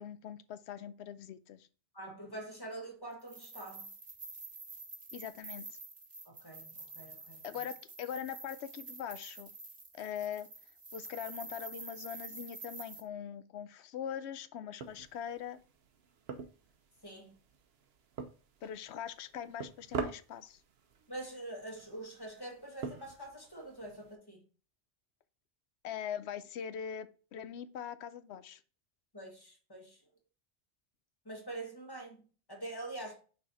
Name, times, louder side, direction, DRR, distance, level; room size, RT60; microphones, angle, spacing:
voice 1, 0.0-1.7 5.1-5.8 7.4-9.5 9.9-10.5 10.9-15.6 18.6-20.6 25.8-28.6, left 9 dB, 85° left, 0.9 m, -42 dB
voice 2, 1.9-3.9 6.2-7.4 17.0-17.4 21.1-24.5 29.1-30.0 31.2-33.1, right 2 dB, 20° left, 1.7 m, -45 dB
sound 1, 3.2-13.0, right 3 dB, 45° right, 1.4 m, -48 dB
sound 2, 14.8-24.2, right 5 dB, 75° right, 1.0 m, -46 dB
5.6 x 4.1 x 4.1 m
omnidirectional pair, 1.1 m